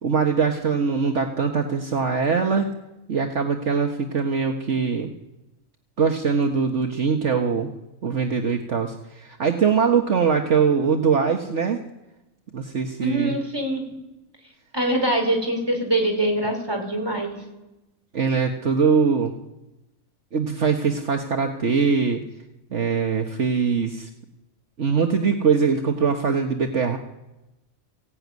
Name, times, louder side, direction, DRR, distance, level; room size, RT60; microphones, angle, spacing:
voice 1, 0.0-2.7 3.1-5.1 6.0-7.7 8.0-11.8 12.5-13.4 18.1-19.3 20.3-22.2 22.7-24.1 24.8-27.0, right 5 dB, 60° right, 4 dB, 1.7 m, -22 dB
voice 2, 13.0-13.8 14.7-17.4, right 1 dB, 15° right, 3 dB, 5.2 m, -24 dB
23.5 x 17.0 x 9.5 m, 1.0 s
omnidirectional pair, 1.4 m